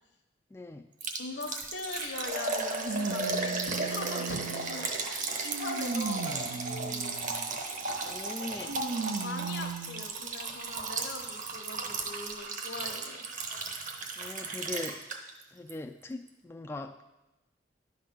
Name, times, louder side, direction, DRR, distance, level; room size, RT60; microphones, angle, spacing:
voice 1, 0.5-0.9 8.0-8.7 14.2-15.0 15.5-17.1, left 2 dB, 15° left, 5 dB, 0.3 m, -40 dB
voice 2, 1.0-7.2 8.4-13.2, left 3 dB, 75° left, 5 dB, 1.1 m, -42 dB
Liquid, 1.0-15.4 15.7-15.8 16.3-16.4, right 3 dB, 45° right, 0.9 m, -35 dB
sound 1, 1.6-1.7 2.8-4.9 5.4-7.5 8.7-10.1 10.8-10.9 12.0-12.1, right 4 dB, 70° right, 0.6 m, -36 dB
11.0 x 4.0 x 6.7 m, 1.0 s
head